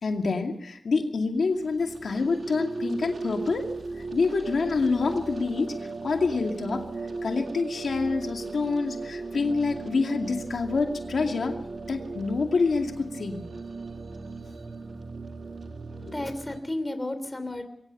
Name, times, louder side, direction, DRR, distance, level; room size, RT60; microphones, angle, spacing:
voice 1, 0.0-3.7 4.1-5.8 6.0-6.9 7.2-11.6 11.9-13.4 16.0-16.1, left 4 dB, 85° left, 3 dB, 2.4 m, -27 dB
sound 1, 1.3-16.6, right 3 dB, 75° right, 2.1 m, -37 dB
voice 2, 15.9-17.6, left 1 dB, 20° left, 9 dB, 3.3 m, -33 dB
23.0 x 18.0 x 6.8 m, 0.76 s
wide cardioid pair, 85°, 0 cm